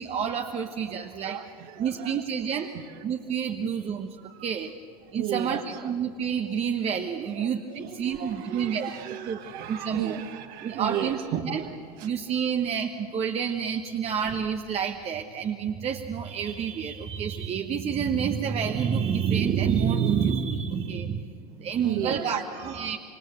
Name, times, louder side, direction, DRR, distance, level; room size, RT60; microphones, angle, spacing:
voice 1, 0.0-1.4 1.8-2.7 3.0-4.2 4.4-4.7 5.1-9.4 9.7-10.2 10.6-11.2 11.4-11.6 12.0-23.0, right 7 dB, 30° right, 5 dB, 1.3 m, -28 dB
voice 2, 1.0-2.2 2.5-3.0 4.2-4.5 5.2-5.9 7.3-12.5 21.8-23.0, right 9 dB, 50° right, 6 dB, 2.0 m, -35 dB
26.5 x 24.5 x 8.4 m, 2.4 s
figure-of-eight pair, 80°, 20 cm